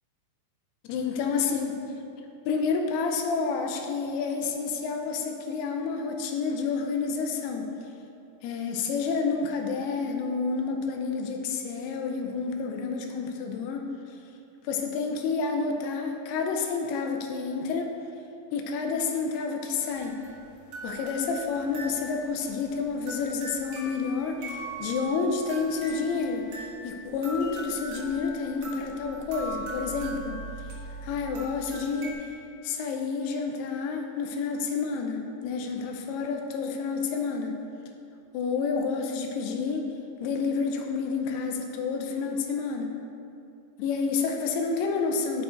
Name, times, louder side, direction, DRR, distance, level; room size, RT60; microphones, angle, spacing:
voice 1, 0.8-1.8 2.5-7.7 8.4-13.9 14.6-17.9 18.5-20.2 20.8-30.4 31.0-32.3 32.6-37.6 38.3-39.8 40.2-42.9 43.8-45.4, left 5 dB, 85° left, 3 dB, 2.3 m, -29 dB
sound 1, 19.8-32.1, right 2 dB, 70° right, 1.8 m, -40 dB
12.0 x 4.9 x 2.5 m, 2.6 s
omnidirectional pair, 5.1 m